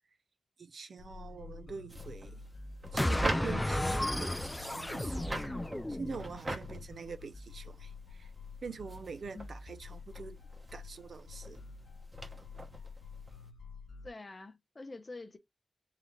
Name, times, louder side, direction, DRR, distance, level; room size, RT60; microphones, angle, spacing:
voice 1, 0.6-2.4 2.9-5.6 5.9-8.3 8.6-10.4 10.7-11.6, right 5 dB, 65° right, 0.5 m, -44 dB
sound 1, 1.0-14.1, left 5 dB, 75° left, 0.5 m, -49 dB
sound 2, 1.9-13.5, right 1 dB, 25° right, 0.9 m, -43 dB
sound 3, 3.0-6.3, left 1 dB, 10° left, 0.3 m, -33 dB
voice 2, 14.0-15.4, left 3 dB, 30° left, 0.7 m, -46 dB
3.8 x 3.1 x 3.0 m
wide cardioid pair, 135°, 0 cm